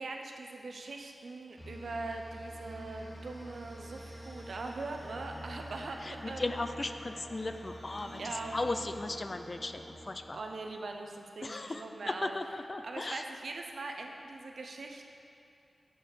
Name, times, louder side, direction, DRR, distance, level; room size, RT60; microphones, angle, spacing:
voice 1, 0.0-6.6 8.2-8.7 10.3-12.3 12.8-15.0, right 3 dB, 75° right, 3 dB, 0.6 m, -41 dB
sound 1, 1.6-11.0, equal, 5° right, 1.4 m, -47 dB
voice 2, 6.0-8.2 8.5-10.4 11.4-13.2, left 2 dB, 40° left, 8 dB, 0.4 m, -36 dB
6.1 x 4.6 x 6.5 m, 2.6 s
wide cardioid pair, 70°, 0 cm